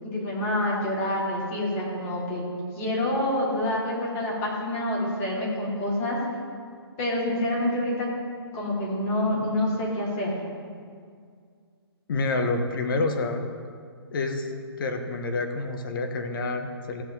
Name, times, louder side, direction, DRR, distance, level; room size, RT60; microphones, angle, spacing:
voice 1, 0.0-2.4 2.7-6.2 7.0-8.1 8.5-10.3, left 1 dB, 30° left, -5 dB, 3.3 m, -27 dB
voice 2, 12.1-13.4 14.1-14.5 14.8-17.0, left 3 dB, 55° left, 5 dB, 1.4 m, -28 dB
15.5 x 7.7 x 4.1 m, 2.1 s
hypercardioid pair, 140°, 14 cm